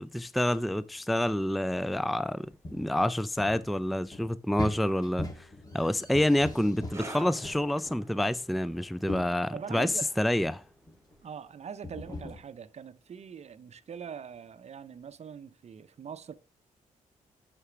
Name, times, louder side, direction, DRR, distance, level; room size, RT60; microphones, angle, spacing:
voice 1, 0.0-5.5 5.7-10.6, left 1 dB, ahead, 0.4 m, -28 dB
sound 1, 2.5-2.9 3.4-7.1 7.4-8.3 8.7-9.4 10.2-10.4 10.9-11.2 11.8-12.4, left 2 dB, 25° left, 1.9 m, -40 dB
sound 2, 6.9-13.9 14.1-14.4 15.1-15.2, right 2 dB, 20° right, 1.6 m, -50 dB
voice 2, 9.5-10.1 11.2-16.3, right 7 dB, 50° right, 0.6 m, -42 dB
6.4 x 5.9 x 6.1 m
cardioid pair, 70°, 14 cm